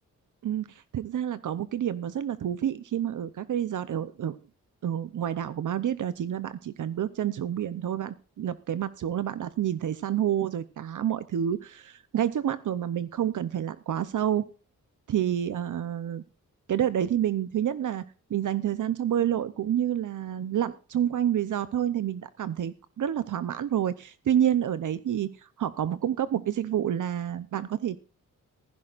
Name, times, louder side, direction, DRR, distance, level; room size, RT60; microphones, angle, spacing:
voice 1, 0.4-4.4 4.8-14.4 15.1-16.2 16.7-18.0 18.3-25.3 25.6-28.0, right 10 dB, 70° right, 14 dB, 0.7 m, -28 dB
15.5 x 15.0 x 2.5 m, 0.35 s
wide cardioid pair, 100°, 32 cm